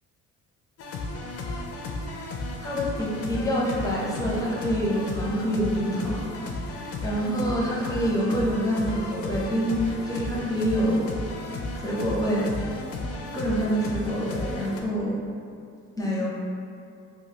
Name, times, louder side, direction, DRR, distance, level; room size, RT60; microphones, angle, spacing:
sound 1, 0.8-14.8, left 2 dB, 50° left, 0.4 m, -34 dB
voice 1, 2.6-6.3 6.7-11.1 11.7-12.5 13.3-15.2 16.0-16.3, equal, 10° left, -5 dB, 0.6 m, -26 dB
3.0 x 2.3 x 2.8 m, 2.4 s
cardioid pair, 90°, 30 cm